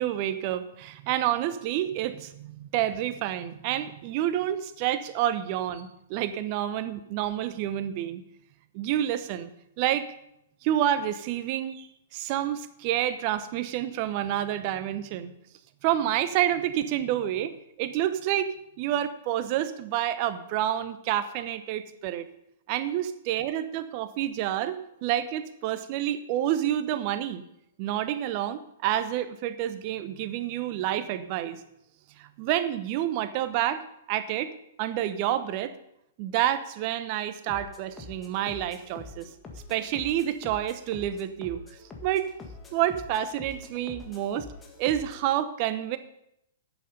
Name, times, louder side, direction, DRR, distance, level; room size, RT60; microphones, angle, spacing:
voice 1, 0.0-8.2 8.7-9.5 9.8-10.1 10.6-11.9 12.1-15.3 15.8-18.5 18.8-22.2 22.7-27.4 27.8-31.6 32.2-33.8 34.1-34.5 34.8-35.7 36.2-39.3 39.7-41.6 42.0-42.3 42.7-44.5 44.8-46.0, right 12 dB, 40° right, 12 dB, 0.9 m, -28 dB
sound 1, 37.5-45.2, left 3 dB, 15° left, 1.7 m, -45 dB
11.0 x 8.2 x 5.2 m, 0.79 s
figure-of-eight pair, 115°, 0 cm